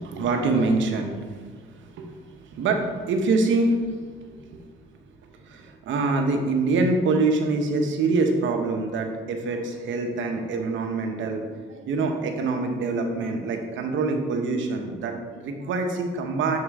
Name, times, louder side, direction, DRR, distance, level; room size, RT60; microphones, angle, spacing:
voice 1, 0.0-4.0 4.5-4.6 5.4-16.6, right 3 dB, 75° right, 4 dB, 0.9 m, -25 dB
6.4 x 4.9 x 3.6 m, 1.5 s
cardioid pair, 90°, 20 cm